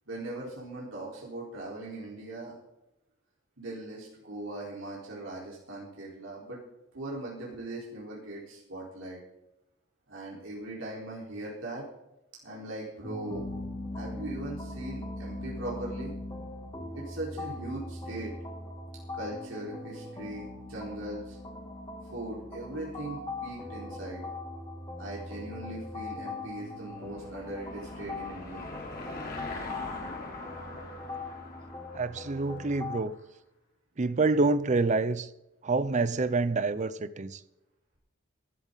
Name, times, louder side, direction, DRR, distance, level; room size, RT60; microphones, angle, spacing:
voice 1, 0.1-2.5 3.6-6.6 6.9-9.2 10.1-11.8 12.4-13.6 13.9-16.1 16.9-18.3 19.1-21.4 22.1-24.2 25.0-28.7, right 2 dB, 90° right, 4.3 m, -40 dB
sound 1, 13.0-33.0, left 2 dB, 20° left, 2.5 m, -40 dB
Car passing by / Engine, 26.2-33.0, left 2 dB, 50° left, 3.6 m, -43 dB
voice 2, 31.9-33.1 34.0-35.3 35.6-37.4, right 3 dB, 40° right, 0.5 m, -27 dB
15.5 x 12.0 x 4.0 m
head